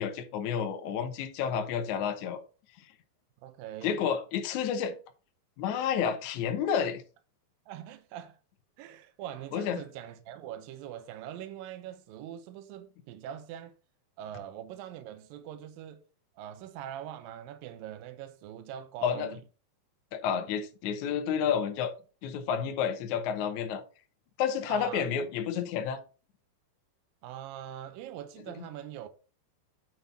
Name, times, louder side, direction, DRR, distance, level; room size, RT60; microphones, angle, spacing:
voice 1, 0.0-2.4 3.8-5.0 5.6-7.0 9.5-9.9 19.0-19.3 20.1-21.9 22.2-23.8 24.4-26.0, left 7 dB, 70° left, 2.0 m, -30 dB
voice 2, 3.4-4.0 7.7-8.4 8.8-13.7 14.2-16.0 16.4-19.4 24.7-25.1 27.2-29.1, right 10 dB, 75° right, 2.3 m, -42 dB
9.1 x 4.1 x 5.6 m
omnidirectional pair, 4.6 m